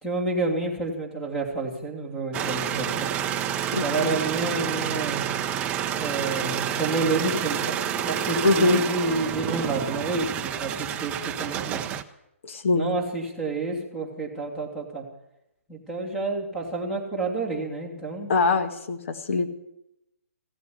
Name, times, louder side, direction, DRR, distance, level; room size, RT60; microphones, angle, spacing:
voice 1, 0.0-3.1 3.8-5.3 6.0-11.8 12.7-15.1 15.7-18.3, right 3 dB, 5° left, 1 dB, 2.9 m, -29 dB
sound 1, 2.3-12.0, right 10 dB, 15° right, 0.6 m, -29 dB
voice 2, 3.7-4.2 8.4-8.8 12.4-12.9 18.3-19.5, left 3 dB, 60° left, 8 dB, 2.0 m, -23 dB
16.0 x 8.2 x 9.7 m, 0.83 s
hypercardioid pair, 160°, 8 cm